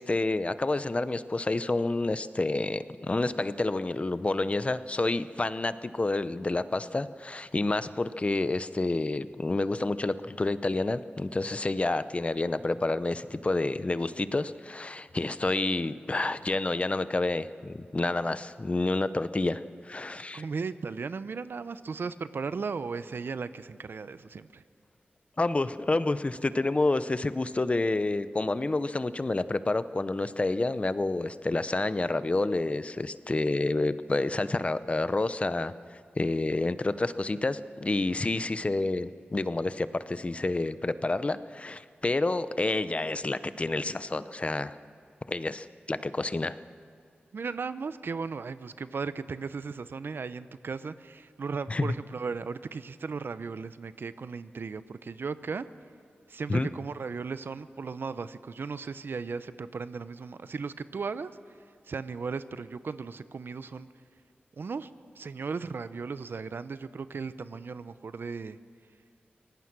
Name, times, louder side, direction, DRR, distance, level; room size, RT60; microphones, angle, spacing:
voice 1, 0.0-20.4 25.4-35.7 36.2-44.8 45.3-46.6 51.7-51.9 56.5-56.7, left 2 dB, 35° left, 13 dB, 0.7 m, -29 dB
voice 2, 20.3-24.6 47.3-55.7 56.3-61.3 61.9-63.9 64.6-64.9 65.2-68.6, right 5 dB, 70° right, 14 dB, 0.7 m, -36 dB
24.0 x 17.5 x 6.1 m, 2.4 s
wide cardioid pair, 75°, 4 cm